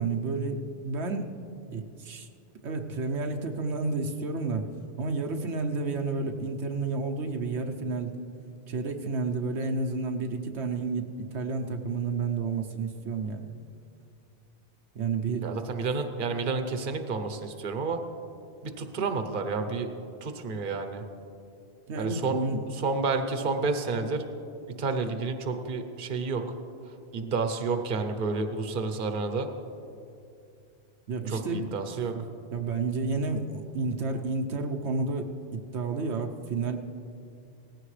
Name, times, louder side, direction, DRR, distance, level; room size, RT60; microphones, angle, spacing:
voice 1, 0.0-1.3 1.7-2.3 2.6-4.7 5.0-8.2 8.7-13.5 14.9-15.5 21.9-22.6 31.1-31.7 32.1-32.2 32.5-36.8, right 3 dB, 85° right, 4 dB, 1.1 m, -31 dB
voice 2, 15.4-18.0 18.6-19.9 20.2-21.0 22.0-22.4 22.7-24.2 24.7-26.4 27.1-29.5 31.3-32.1, right 4 dB, 55° right, 7 dB, 1.0 m, -30 dB
18.0 x 15.5 x 3.3 m, 2.6 s
omnidirectional pair, 1.1 m